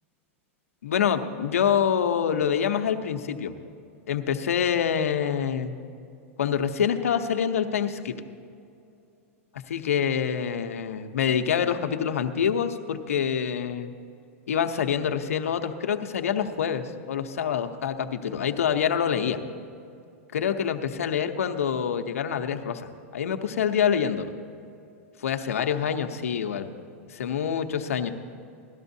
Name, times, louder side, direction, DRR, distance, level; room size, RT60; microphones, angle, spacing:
voice 1, 0.8-3.5 4.1-5.7 6.4-8.1 9.7-13.9 14.5-19.4 20.3-24.3 25.2-26.7 27.1-28.1, left 8 dB, 90° left, 6 dB, 0.8 m, -26 dB
17.5 x 12.5 x 2.7 m, 2.5 s
hypercardioid pair, 125°, 7 cm